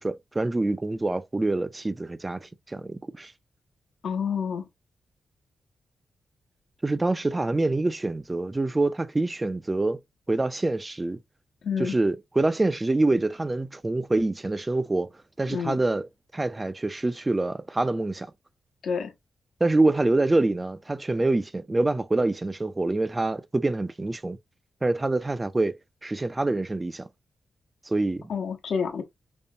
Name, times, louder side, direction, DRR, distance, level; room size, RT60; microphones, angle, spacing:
voice 1, 0.0-3.3 6.8-10.0 10.3-11.2 11.8-15.1 15.4-16.1 16.3-18.3 19.6-24.4 24.8-25.8 26.0-27.1 27.9-28.3, right 2 dB, 20° right, 0.4 m, -26 dB
voice 2, 4.0-4.6 11.6-12.0 15.5-15.8 18.8-19.1 28.3-29.0, left 6 dB, 80° left, 1.0 m, -28 dB
5.2 x 2.1 x 2.6 m
cardioid pair, 105°, 0 cm